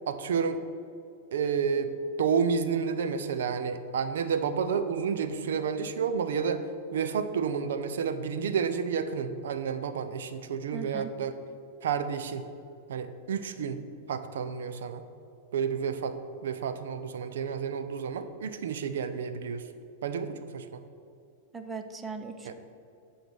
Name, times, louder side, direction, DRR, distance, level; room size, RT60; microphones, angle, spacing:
voice 1, 0.1-0.6 1.3-1.9 2.2-6.6 6.9-11.4 11.8-12.5 12.9-13.8 14.1-15.1 15.5-16.2 16.4-19.7 20.0-20.8 22.4-22.5, right 6 dB, 85° right, 10 dB, 0.5 m, -30 dB
voice 2, 10.7-11.1 21.5-22.5, right 5 dB, 15° right, 7 dB, 0.5 m, -39 dB
8.0 x 3.8 x 6.8 m, 2.5 s
supercardioid pair, 150°, 0 cm